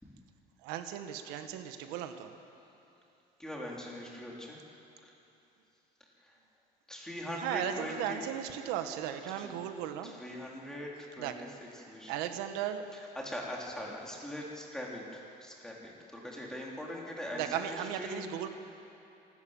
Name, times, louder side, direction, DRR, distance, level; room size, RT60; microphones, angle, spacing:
voice 1, 0.6-2.3 7.4-10.2 11.2-11.5 11.8-13.0 17.3-18.5, right 10 dB, 85° right, 8 dB, 1.5 m, -36 dB
voice 2, 3.4-4.6 5.0-5.1 6.3-6.4 6.9-8.2 9.4-9.5 10.0-11.5 11.8-12.1 13.2-18.2, left 1 dB, 5° left, -3 dB, 3.5 m, -41 dB
26.5 x 13.0 x 8.9 m, 2.9 s
cardioid pair, 140°, 16 cm